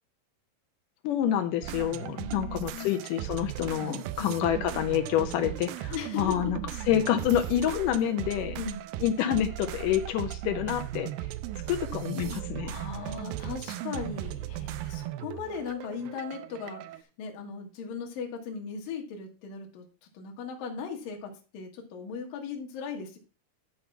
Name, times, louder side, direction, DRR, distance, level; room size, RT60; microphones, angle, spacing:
voice 1, 1.0-6.6 6.9-8.6 9.0-11.1 11.7-12.7, left 10 dB, 80° left, 7 dB, 1.9 m, -28 dB
sound 1, 1.6-17.0, right 14 dB, 85° right, 2.0 m, -37 dB
voice 2, 2.2-3.0 4.2-4.4 5.9-6.5 8.6-8.9 11.6-11.7 12.6-19.8 20.1-23.2, left 6 dB, 65° left, 1 dB, 3.2 m, -38 dB
11.5 x 4.2 x 5.6 m, 0.34 s
omnidirectional pair, 4.7 m